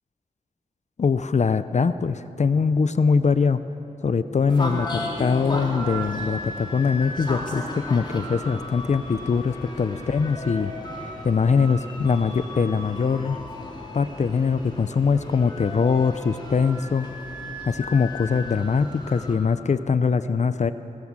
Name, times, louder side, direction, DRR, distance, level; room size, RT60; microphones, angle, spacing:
voice 1, 1.0-3.6 4.0-10.7 11.0-13.4 13.9-17.1 17.6-20.7, left 5 dB, 55° left, 12 dB, 0.6 m, -22 dB
sound 1, 4.5-19.4, left 1 dB, 35° left, 3.7 m, -35 dB
21.5 x 18.0 x 7.4 m, 2.9 s
wide cardioid pair, 80°, 14 cm